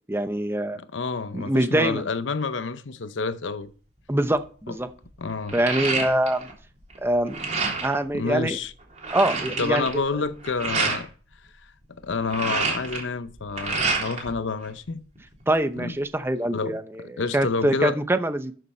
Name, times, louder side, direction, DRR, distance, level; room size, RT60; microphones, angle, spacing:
voice 1, 0.1-0.8 1.3-2.0 4.1-4.9 5.5-6.5 7.0-7.4 7.8-8.6 9.1-9.9 10.1-10.2 15.5-18.5, right 1 dB, 15° right, 0.7 m, -24 dB
voice 2, 0.7-3.7 4.7-4.8 5.2-5.6 8.1-8.7 9.6-11.1 12.0-15.0 15.8-16.0 16.5-18.0, left 4 dB, 85° left, 0.8 m, -29 dB
sound 1, 4.1-4.4 4.8-6.5 6.8-8.0 8.5-8.6 8.8-11.0 12.0-14.3 14.6-15.5, right 4 dB, 40° right, 3.6 m, -28 dB
13.0 x 6.8 x 4.3 m
head